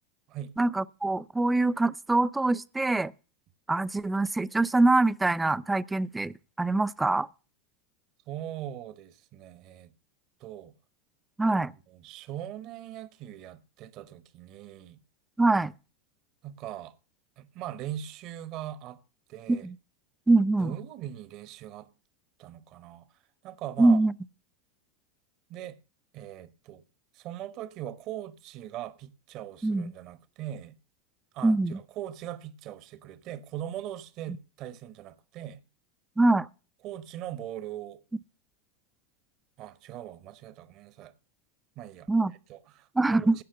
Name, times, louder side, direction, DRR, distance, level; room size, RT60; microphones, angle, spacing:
voice 1, 0.6-3.1 3.7-7.3 11.4-11.7 15.4-15.7 19.5-19.8 20.3-20.7 23.8-24.1 29.6-29.9 31.4-31.8 36.2-36.5 42.1-42.3 43.0-43.4, right 2 dB, 10° right, 0.5 m, -24 dB
voice 2, 8.3-9.9 10.4-10.7 11.9-15.0 16.4-16.9 17.4-19.0 19.3-19.7 20.6-21.9 22.4-23.1 23.4-24.0 25.5-25.8 26.1-26.8 27.1-30.8 31.3-35.6 36.8-38.0 39.6-41.1 41.8-42.1 42.5-43.4, right 11 dB, 50° right, 1.1 m, -40 dB
16.5 x 5.9 x 6.7 m
hypercardioid pair, 90°, 0 cm